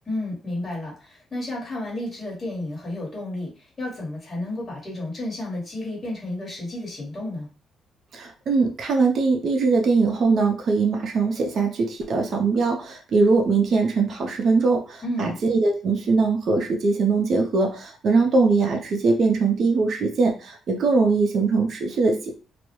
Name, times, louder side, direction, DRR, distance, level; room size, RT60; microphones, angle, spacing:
voice 1, 0.1-7.5 15.0-15.4, left 1 dB, 30° left, -4 dB, 1.2 m, -31 dB
voice 2, 8.1-22.4, right 4 dB, 55° right, 2 dB, 0.5 m, -21 dB
2.2 x 2.0 x 2.9 m, 0.36 s
cardioid pair, 90°, 0 cm